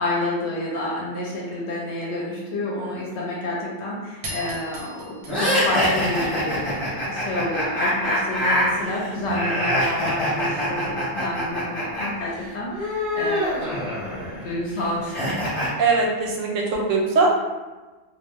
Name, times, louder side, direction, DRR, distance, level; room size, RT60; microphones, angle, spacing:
voice 1, 0.0-13.8 14.0-15.4, left 1 dB, 70° left, -3 dB, 0.8 m, -29 dB
sound 1, 4.2-6.8, right 1 dB, 45° right, 0.7 m, -38 dB
sound 2, 5.3-12.1 12.3-15.7, equal, 25° left, 0.9 m, -25 dB
voice 2, 15.8-17.3, right 3 dB, 85° right, -1 dB, 0.9 m, -21 dB
2.3 x 2.0 x 3.3 m, 1.2 s
omnidirectional pair, 1.3 m